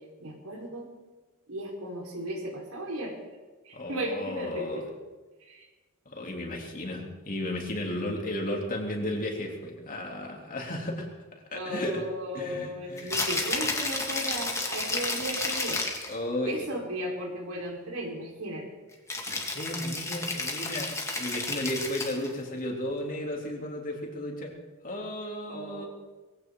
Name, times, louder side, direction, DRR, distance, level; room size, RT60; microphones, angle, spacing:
voice 1, 0.2-0.9 1.5-3.1 3.6-4.8 5.4-5.7 11.5-15.8 16.4-18.6 19.3-19.5 25.5-25.9, right 1 dB, 85° right, -1 dB, 4.5 m, -35 dB
voice 2, 3.7-4.9 6.0-11.1 11.5-12.0 12.3-13.1 16.1-16.7 19.3-24.5 24.8-25.9, left 1 dB, 40° left, 0 dB, 3.1 m, -34 dB
Rattle (instrument), 13.0-16.2 19.1-22.3, left 2 dB, 15° left, 2.2 m, -31 dB
21.5 x 16.0 x 3.9 m, 1.3 s
head